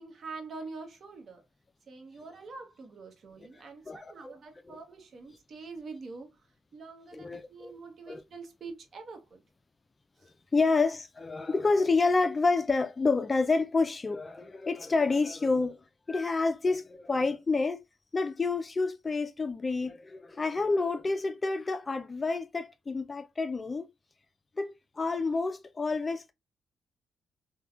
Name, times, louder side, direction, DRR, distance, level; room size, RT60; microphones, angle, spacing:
voice 1, 0.0-1.4 1.9-9.4 10.2-10.3, right 4 dB, 55° right, 0.8 m, -45 dB
voice 2, 3.9-4.3 4.7-4.8 7.2-7.7 8.1-8.2 10.5-15.8 16.1-17.8 18.1-23.9 24.6-26.3, left 3 dB, 30° left, 0.3 m, -28 dB
3.4 x 2.2 x 2.3 m
supercardioid pair, 65°, 0 cm